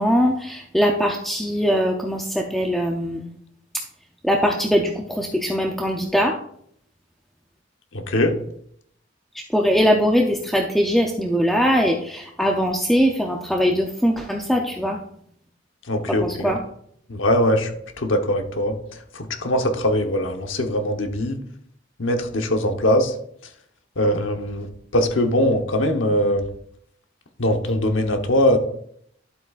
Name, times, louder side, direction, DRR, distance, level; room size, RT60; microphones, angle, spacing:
voice 1, 0.0-3.3 4.2-6.3 9.5-15.0 16.1-16.6, equal, ahead, 0 dB, 0.6 m, -21 dB
voice 2, 7.9-8.3 15.9-16.5 17.1-17.7 18.0-18.7 19.1-21.4 22.0-23.1 24.0-26.4 27.4-28.6, left 1 dB, 70° left, 5 dB, 1.1 m, -21 dB
11.5 x 8.1 x 2.5 m, 0.69 s
head